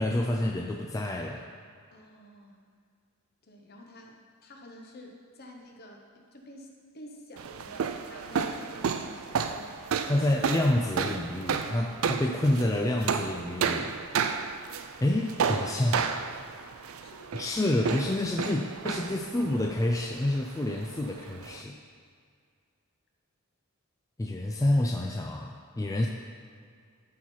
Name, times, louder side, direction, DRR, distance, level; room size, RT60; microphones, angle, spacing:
voice 1, 0.0-1.5 10.1-14.0 15.0-16.2 17.3-21.8 24.2-26.1, left 1 dB, 15° left, 1 dB, 0.4 m, -28 dB
voice 2, 1.9-2.6 3.4-4.2 4.4-10.3 17.0-17.4, equal, 45° left, 1 dB, 1.1 m, -50 dB
sound 1, 7.4-21.6, right 6 dB, 70° right, 0.4 m, -32 dB
12.0 x 4.5 x 4.5 m, 2.2 s
head